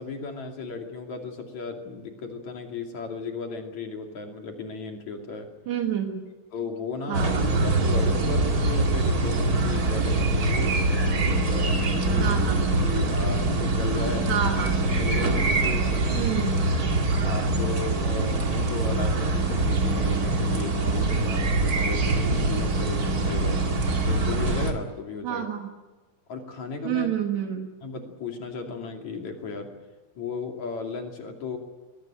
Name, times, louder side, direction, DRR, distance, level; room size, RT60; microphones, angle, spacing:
voice 1, 0.0-5.5 6.3-10.7 11.2-12.4 12.8-14.4 15.0-16.3 17.2-23.7 24.0-25.5 26.3-27.1 27.8-29.8 30.1-31.6, left 4 dB, 45° left, 3 dB, 3.3 m, -35 dB
voice 2, 5.7-6.3 7.1-7.9 12.2-12.7 14.3-14.8 16.1-16.6 25.2-25.7 26.8-27.7, right 9 dB, 65° right, 3 dB, 1.9 m, -29 dB
sound 1, 7.1-24.7, right 2 dB, 85° right, 0.8 m, -24 dB
22.0 x 18.5 x 9.1 m, 1.2 s
omnidirectional pair, 5.6 m